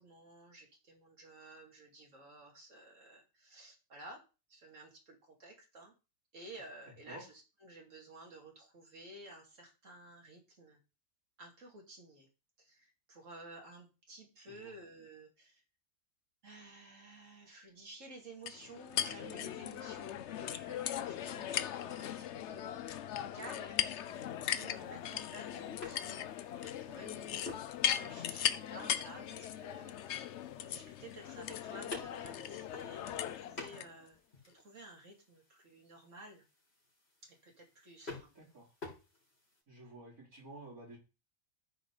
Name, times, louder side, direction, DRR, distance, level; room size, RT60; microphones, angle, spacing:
voice 1, 0.0-4.2 4.5-5.9 6.3-10.8 11.4-12.3 12.6-15.6 16.4-27.6 27.8-34.2 34.5-36.5 37.2-38.3, right 2 dB, 55° right, 0 dB, 3.0 m, -53 dB
sound 1, 18.5-33.9, left 10 dB, 60° left, 0.7 m, -38 dB
sound 2, 24.0-39.6, left 3 dB, 40° left, 3.7 m, -53 dB
voice 2, 39.7-41.0, right 2 dB, 70° right, -4 dB, 5.0 m, -51 dB
13.5 x 4.9 x 4.0 m, 0.31 s
omnidirectional pair, 1.6 m